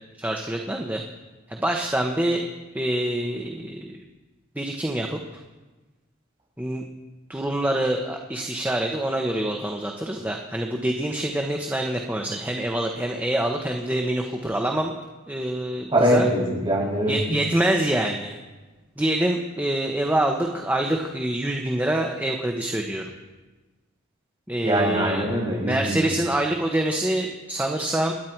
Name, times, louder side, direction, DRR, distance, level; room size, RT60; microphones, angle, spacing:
voice 1, 0.2-1.0 1.5-2.5 2.7-4.0 4.6-5.2 6.6-6.9 7.3-14.9 15.3-16.2 17.1-18.3 19.0-23.1 24.5-25.2 25.6-28.1, right 1 dB, 10° right, 2 dB, 1.0 m, -26 dB
voice 2, 15.9-17.4 24.6-26.1, equal, 25° right, -3 dB, 6.2 m, -22 dB
29.0 x 10.5 x 4.6 m, 1.2 s
head